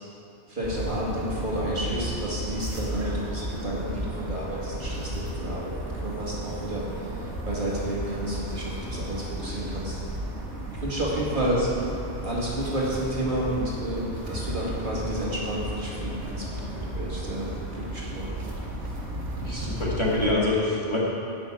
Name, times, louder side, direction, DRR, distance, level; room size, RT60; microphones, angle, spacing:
voice 1, 0.5-5.7 6.0-6.8 7.5-10.0 10.8-11.6 12.2-18.3, right 1 dB, 45° right, -6 dB, 2.4 m, -31 dB
sound 1, 0.6-20.3, right 1 dB, 70° right, 1.9 m, -34 dB
voice 2, 19.3-21.0, left 2 dB, 25° left, -6 dB, 1.9 m, -26 dB
11.0 x 6.2 x 8.7 m, 2.8 s
omnidirectional pair, 1.2 m